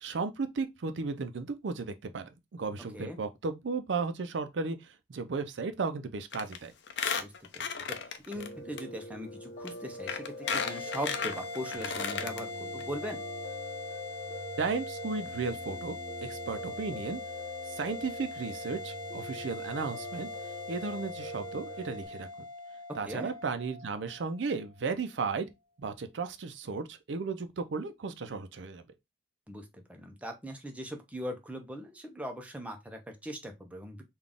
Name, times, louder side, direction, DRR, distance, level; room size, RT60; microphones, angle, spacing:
voice 1, 0.0-6.7 14.6-17.2 17.7-20.3 20.7-22.3 22.9-25.5 25.8-28.8, right 4 dB, 75° right, 0.5 m, -35 dB
Squeak, 6.3-6.6 6.9-8.5 8.8-8.9 9.7-9.8 10.1-12.4 12.8-12.9 13.1-13.2, left 6 dB, 70° left, 0.5 m, -34 dB
voice 2, 7.2-8.0 8.3-13.2 23.1-23.3 29.5-34.0, equal, 10° right, 0.6 m, -40 dB
Piano, 8.3-22.1, equal, 45° left, 1.2 m, -43 dB
sound 1, 10.4-25.0, left 3 dB, 30° left, 0.7 m, -42 dB
3.9 x 2.4 x 3.5 m
head